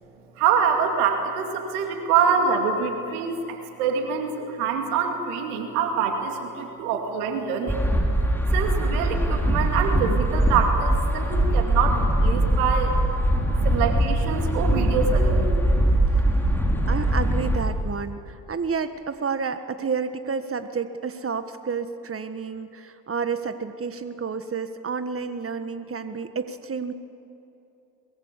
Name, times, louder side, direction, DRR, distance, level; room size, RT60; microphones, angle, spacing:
voice 1, 0.4-7.8 8.5-12.9 13.6-15.6, right 6 dB, 85° right, 4 dB, 2.4 m, -25 dB
sound 1, 7.7-17.6, right 1 dB, 5° left, 5.3 m, -22 dB
voice 2, 16.9-26.9, right 5 dB, 30° right, 10 dB, 1.6 m, -30 dB
23.0 x 22.0 x 8.3 m, 2.8 s
hypercardioid pair, 45°, 43 cm